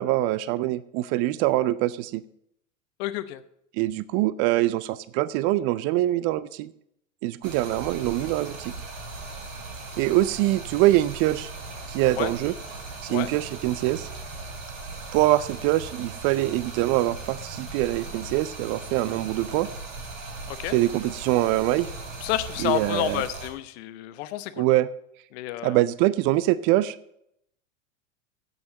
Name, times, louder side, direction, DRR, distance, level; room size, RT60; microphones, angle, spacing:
voice 1, 0.0-2.2 3.7-6.7 7.2-8.7 10.0-11.5 11.9-12.5 13.0-14.1 15.1-19.7 20.7-21.9 22.6-23.2 24.6-24.9 25.6-27.0, right 16 dB, 35° right, 17 dB, 0.5 m, -24 dB
voice 2, 3.0-3.4 12.1-12.3 13.1-13.3 20.5-20.8 22.2-24.7 25.3-25.8, left 14 dB, 50° left, 13 dB, 0.9 m, -30 dB
Stream, 7.4-23.5, right 3 dB, 75° right, 3.4 m, -38 dB
8.2 x 7.0 x 8.6 m, 0.73 s
hypercardioid pair, 100°, 39 cm